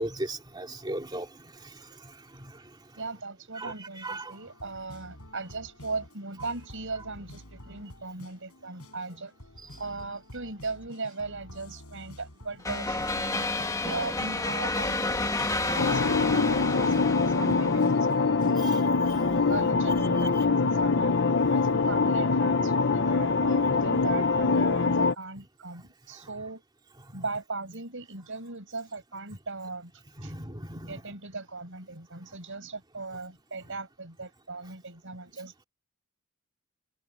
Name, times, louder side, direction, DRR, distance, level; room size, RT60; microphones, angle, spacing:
voice 1, 0.0-2.7 3.5-4.4 18.6-19.5 20.2-20.4 30.2-31.0, right 1 dB, 20° right, 2.7 m, -38 dB
voice 2, 3.0-9.3 9.8-13.5 13.8-18.8 19.5-21.2 21.5-26.6 27.1-29.9 30.2-30.3 30.9-35.7, right 3 dB, 60° right, 6.6 m, -38 dB
sound 1, 4.3-21.1, left 1 dB, 85° left, 7.0 m, -50 dB
sound 2, 12.6-18.1, left 2 dB, 15° left, 1.6 m, -30 dB
sound 3, 15.8-25.1, left 4 dB, 55° left, 0.9 m, -24 dB
head